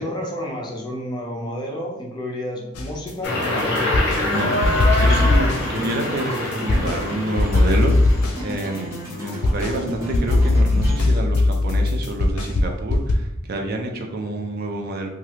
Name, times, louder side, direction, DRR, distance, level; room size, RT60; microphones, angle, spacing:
voice 1, 0.0-4.2, left 1 dB, 20° left, 0 dB, 0.4 m, -30 dB
sound 1, 2.7-4.2 4.6-7.0 7.4-13.1, left 2 dB, 85° left, 0.5 m, -19 dB
sound 2, 3.2-8.4, left 1 dB, 50° left, 0.8 m, -25 dB
voice 2, 4.2-15.1, right 2 dB, 45° right, 2 dB, 0.4 m, -28 dB
sound 3, 4.3-11.0, equal, 15° right, 0.7 m, -33 dB
3.2 x 2.3 x 2.8 m, 0.87 s
head